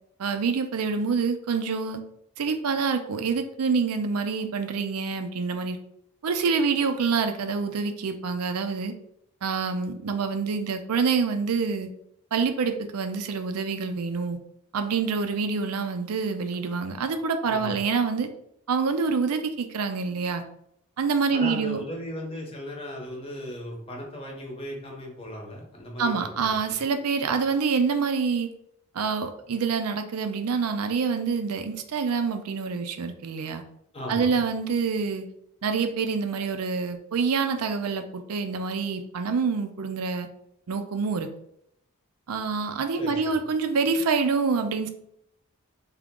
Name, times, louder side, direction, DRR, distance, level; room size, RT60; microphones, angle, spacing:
voice 1, 0.2-2.0 2.4-5.8 6.2-8.9 9.4-11.9 12.3-14.4 14.7-18.3 18.7-20.4 21.0-21.8 26.0-28.5 28.9-33.6 34.1-35.3 35.6-40.3 40.7-41.3 42.3-44.9, right 5 dB, 80° right, 8 dB, 0.5 m, -26 dB
voice 2, 17.4-17.8 21.3-26.8 33.9-34.4 42.9-43.4, equal, 25° left, 0 dB, 0.8 m, -37 dB
3.6 x 2.8 x 3.6 m, 0.74 s
head